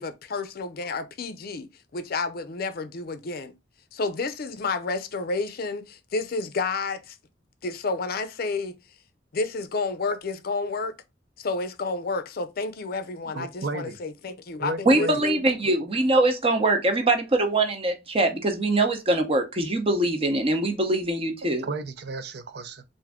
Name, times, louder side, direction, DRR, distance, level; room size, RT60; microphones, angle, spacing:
voice 1, 0.0-3.5 3.9-7.2 7.6-8.7 9.3-10.9 11.4-15.4, left 3 dB, 55° left, 0.5 m, -30 dB
voice 2, 13.3-14.0 14.6-15.2 21.6-22.8, right 3 dB, 60° right, 0.5 m, -33 dB
voice 3, 14.8-21.6, right 2 dB, 30° right, 0.8 m, -23 dB
3.5 x 2.6 x 3.5 m
head